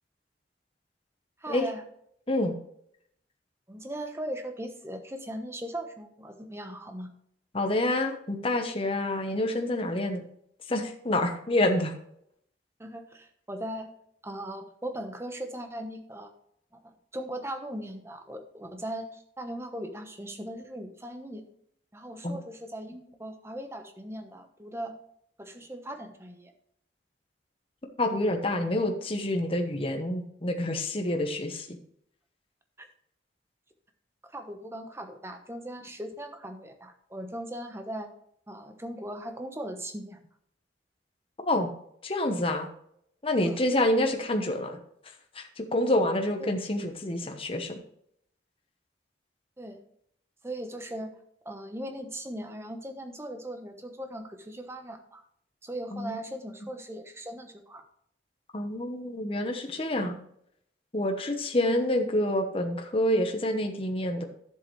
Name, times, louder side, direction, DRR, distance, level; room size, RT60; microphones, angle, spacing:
voice 1, 1.4-1.8 3.7-7.1 12.8-13.9 14.2-16.3 16.7-21.4 21.9-24.9 25.4-26.5 32.8-32.9 34.3-38.1 38.5-40.2 43.4-43.6 46.4-46.6 49.6-49.8 50.4-51.1 51.4-55.2 55.6-57.8, right 1 dB, 15° right, 6 dB, 1.1 m, -39 dB
voice 2, 7.5-10.2 10.7-11.9 22.2-22.4 28.0-31.8 41.4-41.7 42.0-42.7 43.2-44.8 45.3-47.8 55.9-56.2 58.5-60.2 60.9-64.2, left 1 dB, 30° left, 5 dB, 1.0 m, -27 dB
11.0 x 7.8 x 3.2 m, 0.71 s
head